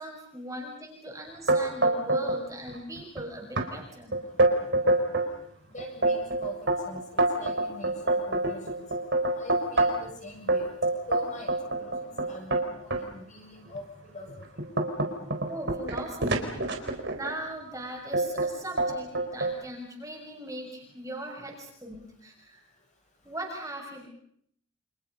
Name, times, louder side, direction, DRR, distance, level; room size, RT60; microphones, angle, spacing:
voice 1, 0.0-4.1 15.5-16.6 17.1-22.6 23.2-24.1, right 1 dB, 15° right, 1 dB, 6.4 m, -39 dB
sound 1, 1.5-2.4 2.7-3.2 3.6-3.7 4.1-5.3 5.8-10.1 10.5-13.0 13.7-13.8 14.3-17.4 18.1-18.5 18.8-19.5, right 2 dB, 50° right, 4.2 m, -26 dB
voice 2, 5.7-8.8 9.4-10.7 11.1-13.8 14.1-14.3, left 1 dB, 35° left, 1 dB, 7.7 m, -43 dB
29.5 x 28.0 x 5.5 m, 0.67 s
head